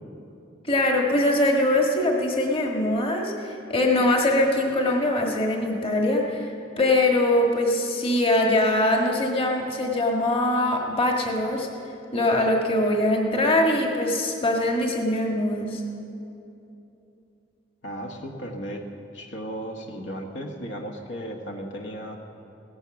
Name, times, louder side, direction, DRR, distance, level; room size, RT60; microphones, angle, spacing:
voice 1, 0.7-11.7 12.1-15.8, left 1 dB, 30° left, 1 dB, 1.6 m, -22 dB
voice 2, 17.8-18.9 19.1-22.2, equal, 70° left, 2 dB, 1.3 m, -35 dB
17.0 x 11.0 x 7.0 m, 2.8 s
head